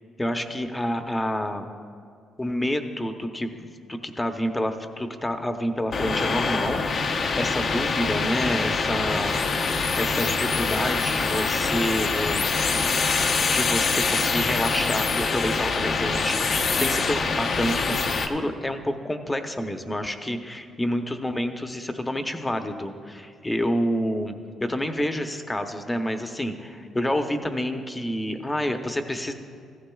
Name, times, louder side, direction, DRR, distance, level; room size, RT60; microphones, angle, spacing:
voice 1, 0.2-1.7 2.4-9.4 10.0-12.4 13.5-24.3 24.6-29.3, equal, 15° left, 7 dB, 0.8 m, -28 dB
sound 1, 5.9-18.3, left 4 dB, 50° left, 0.7 m, -24 dB
15.0 x 13.5 x 2.3 m, 2.2 s
cardioid pair, 90°, 0 cm